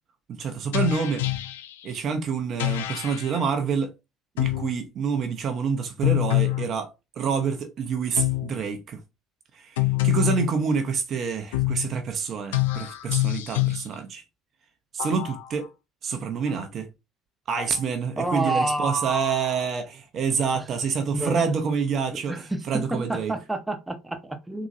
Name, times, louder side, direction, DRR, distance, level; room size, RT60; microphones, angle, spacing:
voice 1, 0.3-1.3 1.8-3.9 4.4-6.9 7.2-9.0 9.5-14.2 14.9-15.7 16.0-16.9 17.5-23.3, right 6 dB, 50° right, 0.7 m, -27 dB
sound 1, 0.7-1.9 2.6-3.4 4.4-4.8 6.0-6.7 8.2-8.6 9.8-10.5 11.5-11.9 12.5-13.9 15.0-15.7 16.5-16.6 17.6-17.8 18.5-18.6, left 19 dB, 75° left, 0.3 m, -26 dB
voice 2, 18.2-19.6 21.1-21.6 22.1-24.7, right 2 dB, 10° right, 0.9 m, -29 dB
3.7 x 2.9 x 2.6 m
figure-of-eight pair, 60°, 0 cm